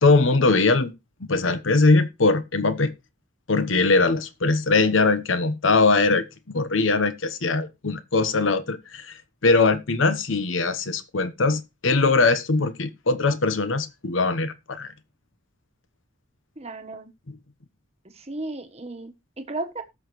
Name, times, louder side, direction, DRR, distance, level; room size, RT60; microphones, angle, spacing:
voice 1, 0.0-0.9 1.2-2.9 3.5-9.1 9.4-14.9 17.3-17.4, left 3 dB, 85° left, 1.0 m, -21 dB
voice 2, 16.6-17.1 18.1-19.8, right 2 dB, 35° right, 1.2 m, -34 dB
18.5 x 6.3 x 3.1 m
head